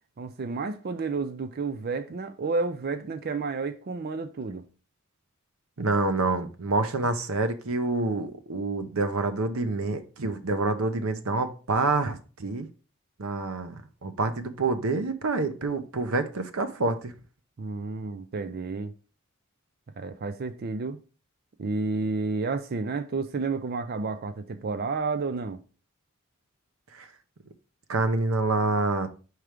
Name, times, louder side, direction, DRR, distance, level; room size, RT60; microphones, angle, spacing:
voice 1, 0.2-4.6 17.6-18.9 20.0-21.0 21.6-25.6, right 3 dB, 45° right, 0.5 m, -31 dB
voice 2, 5.8-12.7 13.2-17.1 26.9-27.1 27.9-29.1, right 3 dB, 80° right, 0.8 m, -27 dB
4.8 x 4.6 x 5.0 m
head